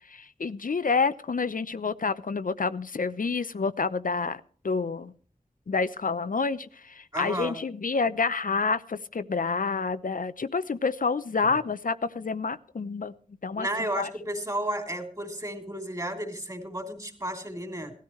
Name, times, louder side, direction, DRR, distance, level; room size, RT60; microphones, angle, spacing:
voice 1, 0.1-5.1 5.7-13.1 13.4-13.7 13.9-14.1, left 4 dB, 75° left, 13 dB, 0.7 m, -28 dB
voice 2, 7.1-7.6 11.4-11.6 13.5-17.9, right 1 dB, 25° right, 3 dB, 3.4 m, -33 dB
18.0 x 13.0 x 3.2 m, 0.43 s
wide cardioid pair, 55°, 14 cm